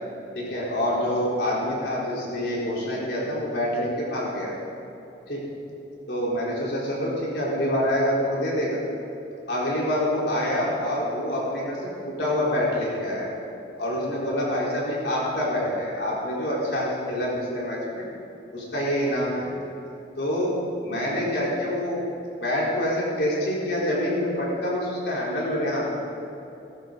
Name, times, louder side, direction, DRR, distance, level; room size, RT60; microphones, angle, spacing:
voice 1, 0.3-4.5 5.3-5.4 6.1-8.8 9.5-11.8 12.0-13.3 13.8-18.0 18.5-19.5 20.2-20.6 20.8-22.0 22.4-25.9, left 1 dB, 70° left, -6 dB, 4.0 m, -26 dB
18.0 x 13.5 x 4.0 m, 2.9 s
head